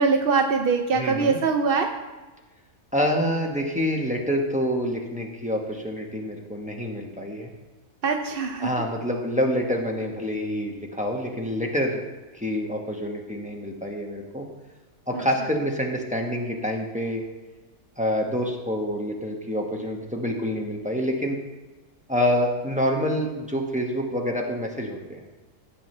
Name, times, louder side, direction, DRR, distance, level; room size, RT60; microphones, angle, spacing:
voice 1, 0.0-1.9 8.0-8.7 15.1-15.2, right 4 dB, 60° right, 4 dB, 0.6 m, -22 dB
voice 2, 0.9-1.4 2.9-7.5 8.6-12.0 12.3-14.4 15.1-17.2 18.0-21.4 22.1-25.2, equal, 5° right, 0 dB, 1.0 m, -27 dB
15.5 x 7.4 x 3.2 m, 1.2 s
omnidirectional pair, 1.6 m